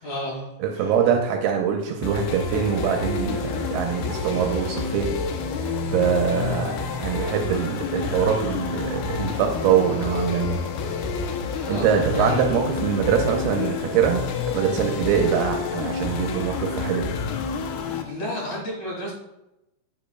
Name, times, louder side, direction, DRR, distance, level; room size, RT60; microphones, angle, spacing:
voice 1, 0.0-0.9 11.5-12.4 15.0-15.1 17.8-19.1, equal, 55° left, -3 dB, 2.3 m, -32 dB
voice 2, 0.6-5.1 5.5-10.6 11.7-17.1, right 7 dB, 80° right, 2 dB, 2.5 m, -23 dB
sound 1, 2.0-18.0, left 5 dB, 80° left, 2.4 m, -29 dB
9.4 x 7.1 x 2.2 m, 0.91 s
omnidirectional pair, 5.0 m